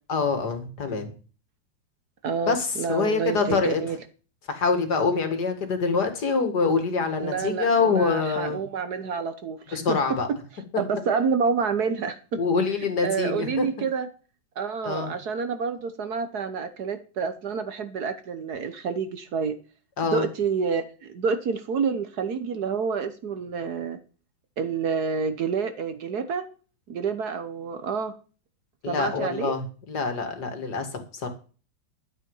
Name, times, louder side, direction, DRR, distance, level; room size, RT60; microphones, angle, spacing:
voice 1, 0.1-1.1 2.5-3.8 4.5-8.6 9.7-10.3 12.4-13.7 14.8-15.1 20.0-20.2 28.8-29.6 29.9-31.3, left 4 dB, 55° left, 7 dB, 2.6 m, -25 dB
voice 2, 2.2-4.0 7.2-10.0 10.8-12.2 13.0-14.1 14.6-19.6 20.0-24.0 24.6-26.5 26.9-28.1 28.9-29.5, right 5 dB, 60° right, 10 dB, 1.4 m, -28 dB
12.5 x 8.4 x 5.4 m, 0.38 s
omnidirectional pair, 2.1 m